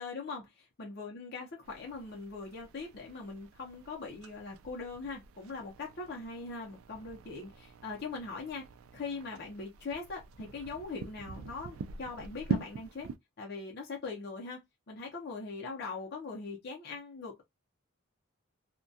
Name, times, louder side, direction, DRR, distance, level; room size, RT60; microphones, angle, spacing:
voice 1, 0.0-8.6 8.9-13.1 13.4-14.6 14.9-17.4, left 4 dB, 50° left, 0.6 m, -41 dB
sound 1, 1.6-13.2, right 5 dB, 75° right, 0.3 m, -43 dB
2.2 x 2.2 x 2.6 m
head